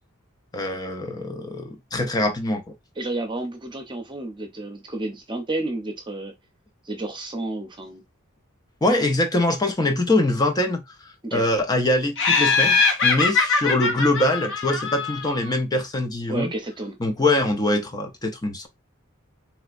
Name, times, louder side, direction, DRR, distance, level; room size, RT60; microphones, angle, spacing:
voice 1, 0.5-2.6 8.8-16.5 17.0-18.7, left 1 dB, 20° left, 0.5 m, -23 dB
voice 2, 3.0-6.3 6.8-8.0 11.2-11.4 16.3-17.0, right 2 dB, 20° right, 0.8 m, -31 dB
Laughter, 12.2-15.5, left 4 dB, 60° left, 0.7 m, -22 dB
3.2 x 2.9 x 2.5 m
head